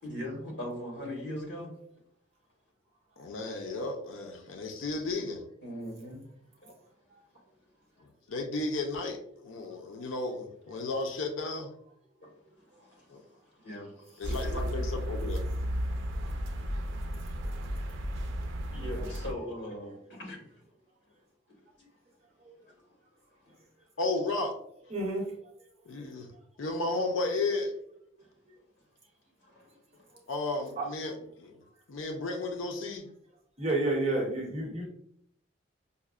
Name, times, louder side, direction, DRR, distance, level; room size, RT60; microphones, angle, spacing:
voice 1, 0.0-1.7 5.6-6.2 6.6-6.7 12.2-12.3 12.7-14.6 18.7-20.5 21.5-21.6 23.5-23.6 29.5-30.1, left 1 dB, 60° left, -2 dB, 1.4 m, -40 dB
voice 2, 3.2-5.4 8.0-11.7 13.1-13.2 14.2-15.4 24.0-24.6 25.9-26.3 26.6-27.7 30.3-31.6 31.9-33.1, left 2 dB, 90° left, 4 dB, 0.5 m, -33 dB
sound 1, 14.2-19.3, equal, 80° right, 0.5 m, -33 dB
voice 3, 24.9-25.3 26.0-26.1 30.8-30.9 33.6-34.9, right 2 dB, 30° right, -1 dB, 0.9 m, -30 dB
5.4 x 2.1 x 2.3 m, 0.70 s
head